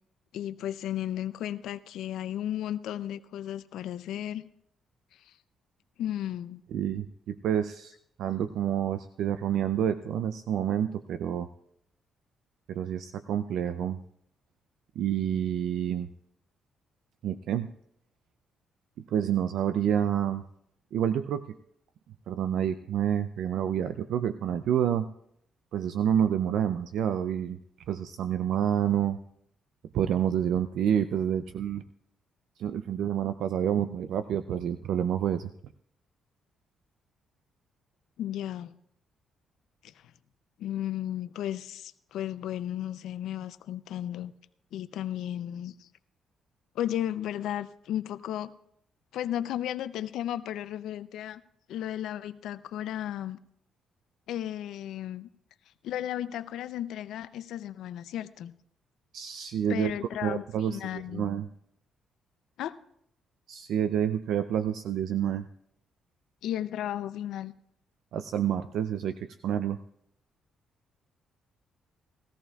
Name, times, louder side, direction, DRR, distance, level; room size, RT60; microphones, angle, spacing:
voice 1, 0.3-4.4 5.1-5.4 6.0-6.6 38.2-38.7 39.8-39.9 40.6-44.3 44.7-45.9 46.7-48.5 49.1-51.4 51.7-53.4 54.3-55.3 55.8-58.5 59.7-61.2 62.6-62.8 66.4-67.5, left 11 dB, 80° left, 12 dB, 0.4 m, -34 dB
voice 2, 6.7-7.9 8.2-11.5 12.7-14.0 15.0-16.1 17.2-17.7 19.1-20.4 20.9-21.6 22.3-25.1 25.7-27.6 27.9-29.2 29.9-31.8 32.6-35.5 59.1-59.9 60.2-61.5 63.5-65.5 68.1-69.8, right 9 dB, 75° right, 10 dB, 0.4 m, -28 dB
18.5 x 14.0 x 2.3 m, 0.72 s
cardioid pair, 90°, 0 cm